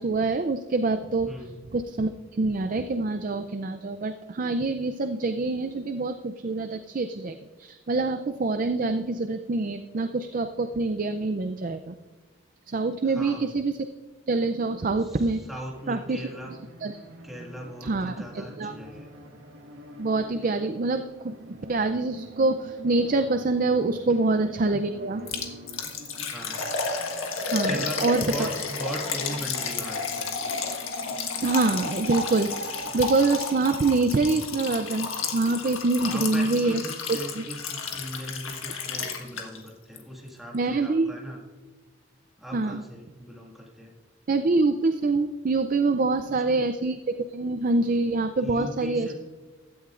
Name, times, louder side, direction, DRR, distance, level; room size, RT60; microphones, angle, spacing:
voice 1, 0.0-1.3 1.7-11.9 12.7-13.7 14.3-15.4 15.9-16.2 16.8-17.0 17.8-18.7 20.0-25.2 27.5-28.5 31.4-36.8 37.4-37.5 40.5-41.1 42.5-42.8 44.3-49.1, right 3 dB, 40° right, 8 dB, 0.4 m, -25 dB
voice 2, 1.3-1.6 13.0-13.5 15.0-16.6 17.2-19.1 26.2-26.7 27.6-30.4 30.7-31.0 36.0-41.4 42.4-43.9 46.2-46.7 48.4-49.1, equal, ahead, -2 dB, 1.9 m, -39 dB
sound 1, 15.4-34.1, right 1 dB, 80° right, 1.6 m, -46 dB
Liquid, 25.3-39.7 40.0-40.1 40.5-40.6, left 4 dB, 80° left, 1.5 m, -32 dB
16.0 x 12.5 x 2.5 m, 1.3 s
head